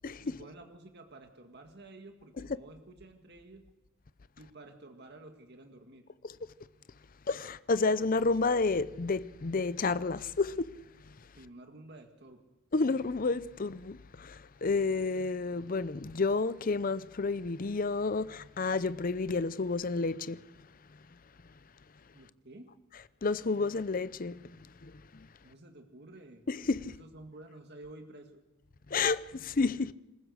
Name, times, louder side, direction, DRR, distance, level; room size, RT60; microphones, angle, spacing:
voice 1, 0.2-3.6 4.4-6.1 11.4-12.4 22.1-22.7 25.4-26.4 27.0-28.4, right 2 dB, 50° right, 2.0 m, -51 dB
voice 2, 7.3-10.7 12.7-20.4 23.2-24.4 24.8-25.3 26.5-27.0 28.9-29.9, left 3 dB, 40° left, 0.6 m, -30 dB
26.5 x 15.0 x 6.5 m
head